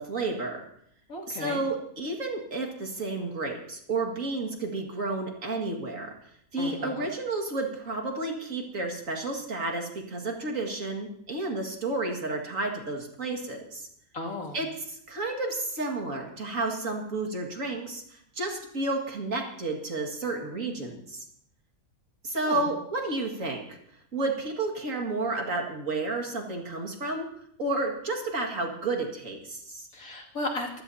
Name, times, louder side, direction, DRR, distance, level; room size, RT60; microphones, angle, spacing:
voice 1, 0.1-0.7 1.3-6.1 6.5-13.9 14.5-21.2 22.2-23.8 24.1-27.3 27.6-29.9, right 2 dB, 60° right, 1 dB, 2.5 m, -31 dB
voice 2, 1.1-1.6 6.6-7.1 14.1-14.6 22.4-22.7 29.9-30.8, left 1 dB, 70° left, -1 dB, 3.1 m, -35 dB
24.0 x 15.0 x 2.8 m, 0.69 s
omnidirectional pair, 1.5 m